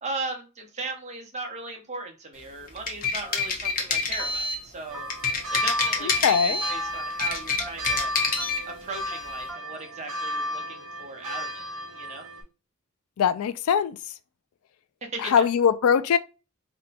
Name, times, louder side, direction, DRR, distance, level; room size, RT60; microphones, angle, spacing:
voice 1, 0.0-5.1 5.5-8.1 8.7-11.7 11.9-12.3 15.0-15.4, right 3 dB, 35° right, 0.8 m, -37 dB
sound 1, 2.7-4.6 5.1-6.8 7.1-8.6, left 4 dB, 40° left, 0.7 m, -27 dB
sound 2, 3.2-3.6 3.8-4.7 4.9-5.5 5.7-6.3 6.5-7.0 7.6-8.1 8.4-8.5 8.8-8.9 9.1-9.2 9.5-9.6, right 1 dB, ahead, 0.4 m, -44 dB
sound 3, 4.9-12.4, equal, 80° right, 1.0 m, -34 dB
voice 2, 6.2-6.6 13.2-14.0 15.2-16.2, left 7 dB, 90° left, 0.3 m, -21 dB
2.7 x 2.2 x 4.0 m
head